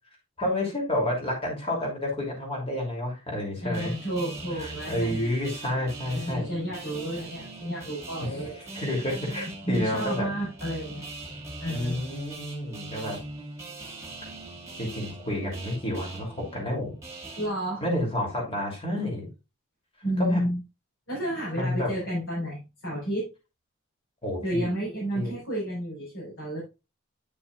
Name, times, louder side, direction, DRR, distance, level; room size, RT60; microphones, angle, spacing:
voice 1, 0.4-3.9 4.6-6.4 8.2-8.4 8.7-10.3 11.7-13.2 14.8-16.9 17.8-19.3 20.2-20.4 21.5-21.9 24.2-24.7 25.1-25.3, left 1 dB, 25° left, -1 dB, 3.0 m, -30 dB
voice 2, 3.6-5.2 6.1-8.6 9.6-11.0 11.6-12.0 17.4-17.8 19.0-19.1 20.0-20.6 21.1-23.3 24.4-26.6, right 1 dB, 60° left, -7 dB, 4.4 m, -31 dB
sound 1, 3.7-17.5, right 2 dB, 15° right, 2.1 m, -41 dB
9.3 x 6.9 x 2.4 m, 0.27 s
head